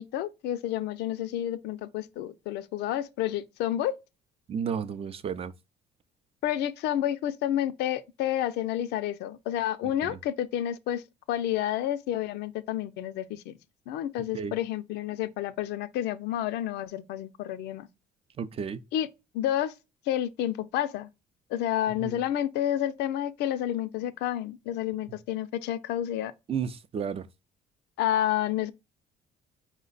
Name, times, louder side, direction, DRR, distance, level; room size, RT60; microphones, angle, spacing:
voice 1, 0.0-3.9 6.4-11.0 11.3-13.5 13.9-17.9 18.9-19.1 19.3-19.7 20.1-21.1 21.5-26.3 28.0-28.7, left 12 dB, 80° left, 0.5 m, -30 dB
voice 2, 4.5-5.5 10.0-10.2 14.3-14.5 18.4-18.8 22.0-22.2 26.5-27.2, right 7 dB, 35° right, 0.4 m, -32 dB
4.8 x 2.1 x 3.9 m
cardioid pair, 110°, 17 cm